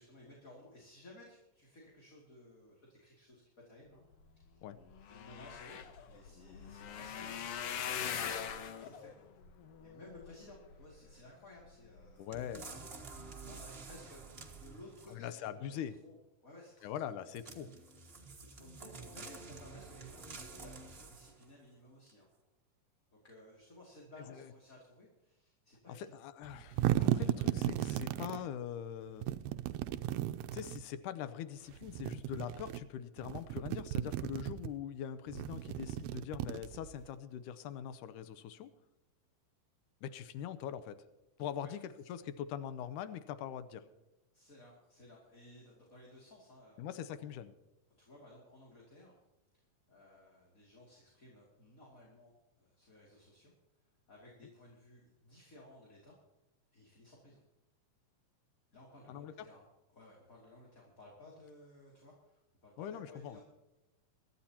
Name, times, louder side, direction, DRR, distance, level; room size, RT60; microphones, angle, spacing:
voice 1, 0.0-4.0 4.4-4.5 5.1-8.5 8.8-9.1 9.8-12.3 12.7-12.8 13.1-16.2 16.4-17.0 18.4-22.3 23.1-26.2 41.6-41.7 44.3-47.3 48.0-49.2 49.5-49.6 49.9-53.5 54.1-56.1 56.7-57.4 58.7-63.4, left 1 dB, 25° left, -3 dB, 2.6 m, -57 dB
sound 1, 4.4-4.5 4.7-11.1 11.7-12.1 12.5-12.7 13.0-13.1, left 8 dB, 65° left, 1.5 m, -42 dB
voice 2, 12.2-12.7 15.1-15.9 16.8-17.7 24.3-24.5 25.9-29.3 30.5-38.7 40.0-41.0 41.4-43.9 46.8-47.5 59.1-59.3 62.8-63.4, left 9 dB, 85° left, 12 dB, 2.2 m, -42 dB
sound 2, 12.3-15.3 17.3-21.5 22.1-22.2, right 4 dB, 45° right, 0.7 m, -50 dB
sound 3, 26.4-28.4 29.2-30.8 31.7-32.8 33.2-34.7 35.3-37.1, right 13 dB, 80° right, 1.7 m, -35 dB
23.5 x 12.0 x 2.9 m, 1.0 s
omnidirectional pair, 3.6 m